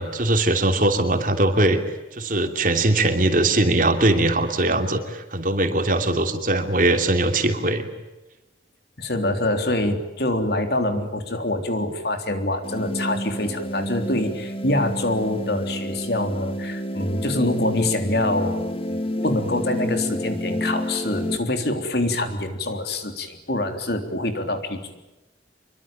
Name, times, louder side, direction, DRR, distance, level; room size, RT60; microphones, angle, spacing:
voice 1, 0.0-1.8 2.1-7.9, right 2 dB, 45° right, 6 dB, 2.9 m, -21 dB
voice 2, 9.0-24.8, left 1 dB, 55° left, 7 dB, 3.5 m, -25 dB
sound 1, 12.6-21.4, left 1 dB, 30° left, 2.2 m, -29 dB
26.5 x 23.0 x 8.9 m, 1.0 s
head